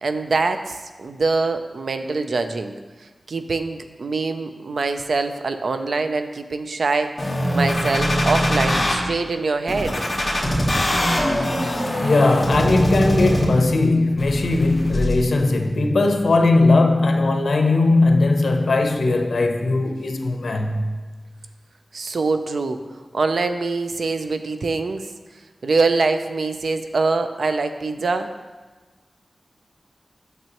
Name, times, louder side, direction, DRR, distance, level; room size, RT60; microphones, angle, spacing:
voice 1, 0.0-10.0 21.9-22.8 23.1-25.1 25.6-28.3, right 3 dB, 80° right, 0.4 m, -24 dB
sound 1, 7.2-8.9 9.7-13.7 14.2-15.2, equal, 30° left, 1.7 m, -22 dB
voice 2, 12.0-21.0, left 2 dB, 80° left, 0.7 m, -18 dB
9.1 x 6.6 x 3.0 m
wide cardioid pair, 85°, 0 cm